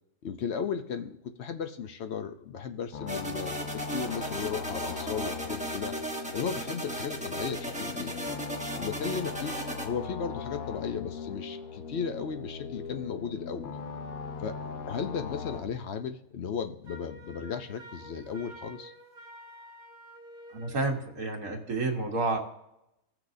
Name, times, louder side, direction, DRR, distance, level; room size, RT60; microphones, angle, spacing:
voice 1, 0.2-6.0 6.3-8.2 8.7-9.6 9.8-13.7 14.4-14.6 14.9-18.9, left 6 dB, 60° left, 8 dB, 0.8 m, -35 dB
sound 1, 2.9-15.6, left 5 dB, 85° left, 1.2 m, -39 dB
sound 2, 3.1-9.9, right 1 dB, 5° right, 0.7 m, -36 dB
Wind instrument woodwind instrument, 16.8-20.8, right 1 dB, 30° left, 2.3 m, -49 dB
voice 2, 20.5-22.4, right 3 dB, 80° right, 1 dB, 1.8 m, -30 dB
16.0 x 6.1 x 2.6 m, 0.85 s
omnidirectional pair, 1.5 m